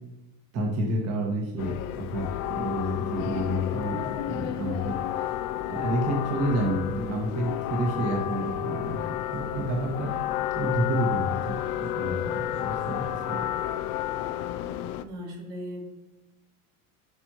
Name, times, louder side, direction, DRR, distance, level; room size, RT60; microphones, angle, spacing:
voice 1, 0.5-5.3 5.7-9.0 9.3-10.1 10.5-13.4, right 1 dB, 35° right, 0 dB, 1.6 m, -29 dB
sound 1, 1.6-15.0, left 12 dB, 75° left, 0.6 m, -31 dB
voice 2, 15.0-15.9, equal, 80° right, -1 dB, 2.7 m, -39 dB
9.8 x 5.3 x 3.0 m, 1.0 s
supercardioid pair, 140°, 45 cm